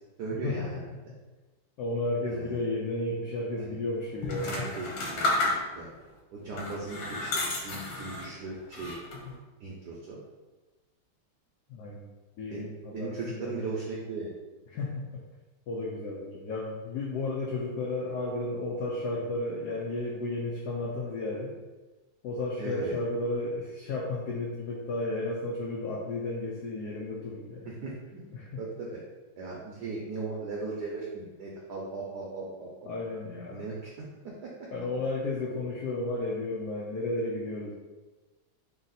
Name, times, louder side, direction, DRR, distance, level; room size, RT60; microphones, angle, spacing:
voice 1, 0.2-0.8 2.3-2.6 3.6-3.8 4.4-5.3 5.8-5.9 6.3-9.0 9.6-10.2 12.5-12.7 12.9-14.3 22.6-23.0 27.8-28.2 28.6-29.0 29.4-32.9 33.5-33.9 34.4-34.5, right 3 dB, 70° right, -4 dB, 1.0 m, -37 dB
voice 2, 1.8-4.5 11.7-12.1 12.4-13.6 14.7-15.2 15.7-21.5 22.2-27.7 28.3-28.6 32.8-33.7 34.7-37.7, left 2 dB, 90° left, -3 dB, 0.8 m, -33 dB
sound 1, 4.2-6.0 6.5-8.3 8.7-9.3, left 2 dB, 70° left, 1.4 m, -31 dB
3.3 x 2.8 x 3.9 m, 1.2 s
omnidirectional pair, 2.4 m